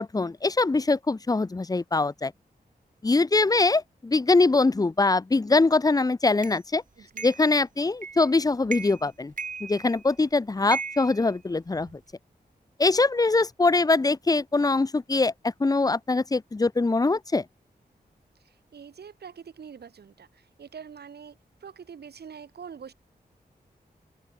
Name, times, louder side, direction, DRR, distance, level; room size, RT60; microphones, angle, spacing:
voice 1, 0.0-2.3 3.0-6.8 7.2-9.3 9.6-12.0 12.8-17.4, left 3 dB, 20° left, 0.6 m, -23 dB
sound 1, 6.4-6.6 7.2-7.5 8.0-8.3 8.7-9.1 9.4-10.2 10.7-12.0, right 5 dB, 50° right, 1.3 m, -36 dB
voice 2, 7.0-7.3 18.4-22.9, right 7 dB, 80° right, 1.5 m, -45 dB
wide cardioid pair, 80°, 17 cm